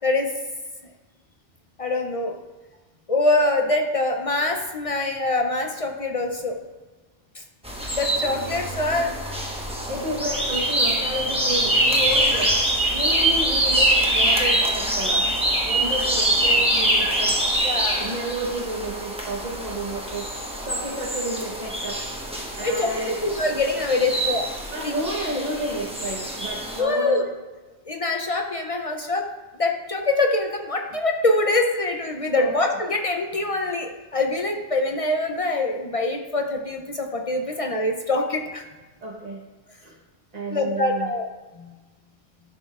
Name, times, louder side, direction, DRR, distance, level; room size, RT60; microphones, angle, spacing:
voice 1, 1.8-2.4 3.1-6.6 7.9-9.1 17.6-18.1 22.6-22.9 23.2-24.5 24.8-24.9 25.4-25.5 26.8-27.2 27.9-29.3 29.6-38.6 40.5-41.2, left 2 dB, 50° left, 3 dB, 0.4 m, -24 dB
sound 1, 7.6-26.8, right 1 dB, 5° right, 0.9 m, -24 dB
voice 2, 9.9-12.5 12.9-15.3 15.6-17.4 18.0-20.3 20.6-22.0 22.6-23.3 23.8-24.3 24.7-27.3 32.4-32.5 37.5-37.6 39.0-39.4 39.8-39.9 40.3-41.1, right 1 dB, 40° right, -5 dB, 1.0 m, -31 dB
11.0 x 6.3 x 2.4 m, 1.2 s
omnidirectional pair, 1.2 m